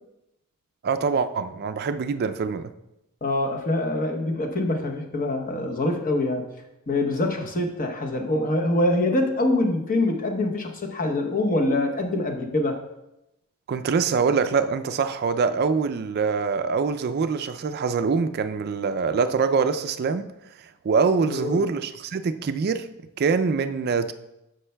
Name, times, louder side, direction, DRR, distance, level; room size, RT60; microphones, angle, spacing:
voice 1, 0.8-2.7 13.7-20.3 20.8-22.9 23.2-24.1, right 5 dB, 45° right, 0.3 m, -24 dB
voice 2, 3.2-6.5 6.9-12.8 21.3-21.7, left 2 dB, 40° left, 0.8 m, -24 dB
9.7 x 6.5 x 2.2 m
head